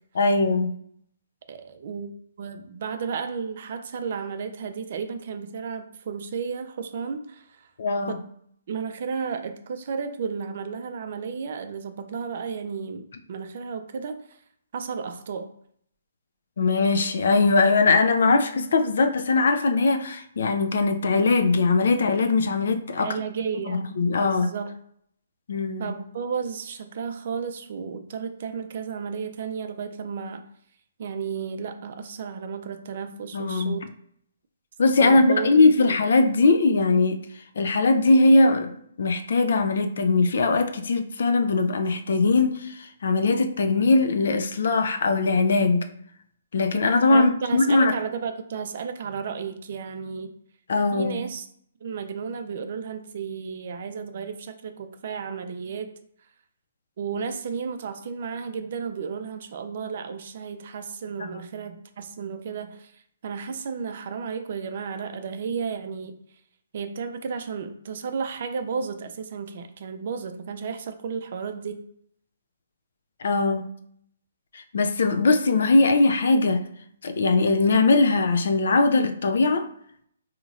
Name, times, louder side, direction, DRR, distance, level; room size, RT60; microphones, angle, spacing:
voice 1, 0.2-0.7 7.8-8.2 16.6-23.1 23.7-24.5 25.5-25.9 33.3-33.8 34.8-37.2 37.6-45.9 46.5-47.9 50.7-51.2 73.2-73.7 74.5-76.6 77.0-79.7, left 3 dB, 60° left, 8 dB, 0.4 m, -20 dB
voice 2, 1.5-7.7 8.1-8.2 8.7-14.4 14.7-15.5 23.0-23.9 24.2-24.7 25.8-30.5 31.0-33.9 35.0-36.0 47.1-50.3 50.9-51.5 51.8-55.9 57.0-66.2 66.7-71.8, right 6 dB, 50° right, 8 dB, 0.4 m, -33 dB
3.8 x 2.8 x 2.4 m, 0.67 s
figure-of-eight pair, 130°, 0 cm